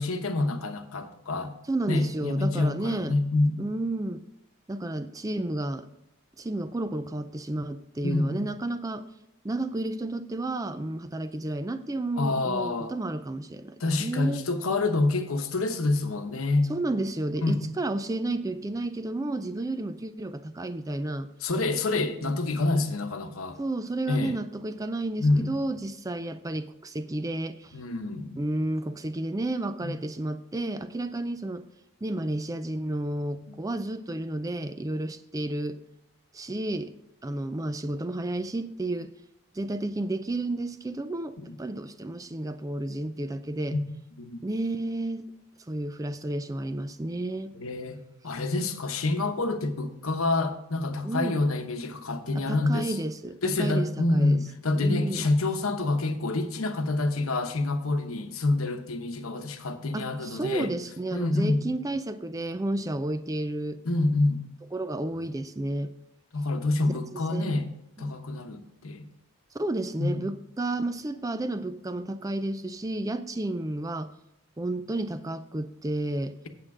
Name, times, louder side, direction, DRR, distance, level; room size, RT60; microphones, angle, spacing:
voice 1, 0.0-1.5 1.9-3.7 8.0-8.4 12.2-12.9 13.8-16.7 17.4-17.6 21.4-23.6 24.1-24.4 25.2-25.5 27.7-28.4 29.8-29.9 41.4-41.5 43.7-43.8 44.2-44.5 47.5-53.0 53.4-60.7 61.1-61.6 63.8-64.5 66.3-67.7 68.0-69.1 70.0-70.3, left 2 dB, 80° left, 7 dB, 1.0 m, -27 dB
voice 2, 1.7-3.1 3.6-4.2 4.7-5.9 6.4-9.0 9.4-14.4 16.7-21.3 22.2-22.3 23.6-27.8 28.4-31.7 32.0-35.8 36.3-36.9 37.2-39.1 39.5-43.8 44.4-45.3 45.7-47.5 51.0-51.4 52.4-54.4 54.8-55.3 59.9-63.8 64.7-65.9 67.1-67.6 68.0-68.1 69.5-74.1 74.6-76.4, right 2 dB, 15° right, 11 dB, 0.4 m, -31 dB
8.6 x 7.5 x 4.8 m, 0.86 s
head